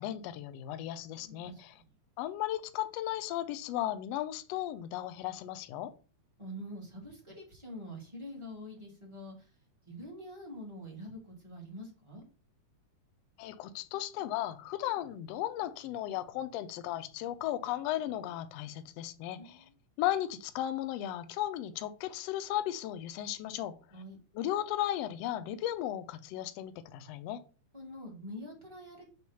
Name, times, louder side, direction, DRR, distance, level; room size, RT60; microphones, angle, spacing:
voice 1, 0.0-1.7 2.2-5.9 13.4-19.6 20.0-23.7 24.3-27.4, left 13 dB, 80° left, 1.5 m, -35 dB
voice 2, 1.1-1.9 6.4-9.5 9.8-12.2 19.3-19.7 23.9-24.2 27.7-29.1, equal, 15° right, 1.2 m, -46 dB
6.1 x 3.1 x 5.6 m
omnidirectional pair, 3.3 m